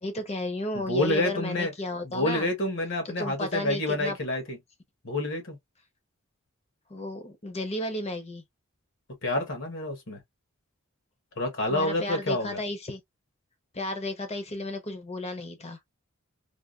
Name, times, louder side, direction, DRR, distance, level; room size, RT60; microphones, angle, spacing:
voice 1, 0.0-2.5 3.2-4.2 6.9-8.4 11.7-13.0 13.7-15.8, left 1 dB, 30° left, 0.9 m, -33 dB
voice 2, 0.7-1.7 2.0-4.6 5.0-5.6 9.2-10.2 11.4-12.6, left 1 dB, 65° left, 1.3 m, -28 dB
3.5 x 2.4 x 2.4 m
head